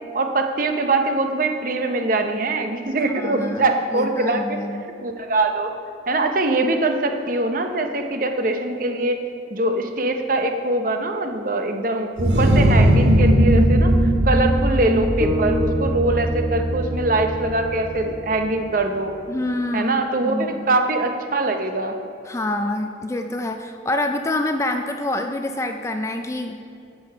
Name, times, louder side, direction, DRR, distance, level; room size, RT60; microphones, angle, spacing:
voice 1, 0.1-4.6 5.0-5.7 6.1-9.2 9.5-13.9 14.2-19.1 19.7-22.0, right 2 dB, 50° right, 5 dB, 0.7 m, -22 dB
voice 2, 3.2-4.8 19.3-19.9 20.2-20.7 22.3-26.6, left 1 dB, 15° left, 5 dB, 0.4 m, -26 dB
sound 1, 12.2-17.7, right 1 dB, 70° right, 1.1 m, -18 dB
sound 2, 15.2-19.6, right 1 dB, 30° right, 1.2 m, -30 dB
10.5 x 6.6 x 4.6 m, 2.6 s
head